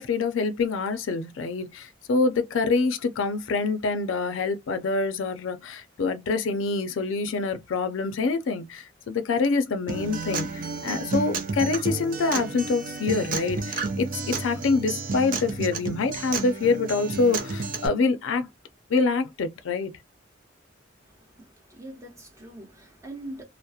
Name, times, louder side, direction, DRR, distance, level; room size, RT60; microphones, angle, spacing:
voice 1, 0.0-18.5 18.9-19.9, left 4 dB, 85° left, 0.4 m, -26 dB
Acoustic guitar, 9.9-17.9, right 4 dB, 45° right, 0.4 m, -31 dB
voice 2, 21.0-23.4, right 1 dB, 15° right, 0.9 m, -43 dB
2.3 x 2.0 x 2.7 m
head